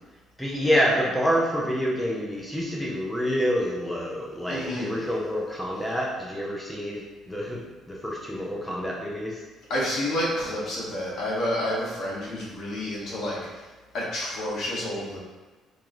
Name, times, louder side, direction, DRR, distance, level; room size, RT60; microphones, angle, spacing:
voice 1, 0.4-7.6 7.9-9.4, equal, 5° left, -4 dB, 0.4 m, -27 dB
voice 2, 4.5-5.0 9.7-13.7 13.9-15.2, left 1 dB, 65° left, -6 dB, 1.0 m, -29 dB
3.0 x 2.1 x 3.7 m, 1.3 s
cardioid pair, 125°, 0 cm